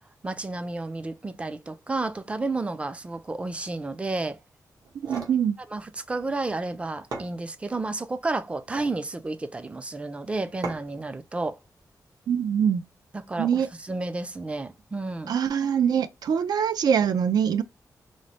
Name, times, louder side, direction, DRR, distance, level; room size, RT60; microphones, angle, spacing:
voice 1, 0.2-4.4 5.7-11.6 13.1-15.4, right 2 dB, 20° right, 0.4 m, -31 dB
sound 1, 4.8-5.4 6.7-6.8 7.1-7.9 8.6-9.0 10.6-11.1, right 4 dB, 70° right, 1.0 m, -37 dB
voice 2, 5.1-5.6 12.3-12.8 13.4-13.7 15.3-17.6, right 8 dB, 90° right, 0.4 m, -23 dB
3.1 x 2.0 x 4.0 m
wide cardioid pair, 140°, 7 cm